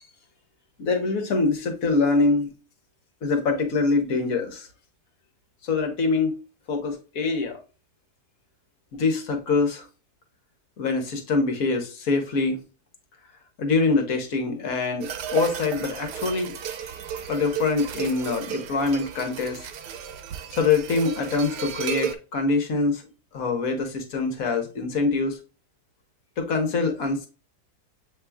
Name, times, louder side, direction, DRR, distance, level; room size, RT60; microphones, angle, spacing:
voice 1, 0.8-2.5 3.2-4.7 5.6-6.4 6.7-7.6 8.9-9.8 10.8-12.6 13.6-15.1 15.3-16.5 17.3-19.7 20.5-23.0 23.3-25.4 26.4-27.3, left 4 dB, 60° left, 1.4 m, -24 dB
sound 1, 15.0-22.1, right 8 dB, 90° right, 1.2 m, -33 dB
7.5 x 3.0 x 2.2 m
omnidirectional pair, 1.7 m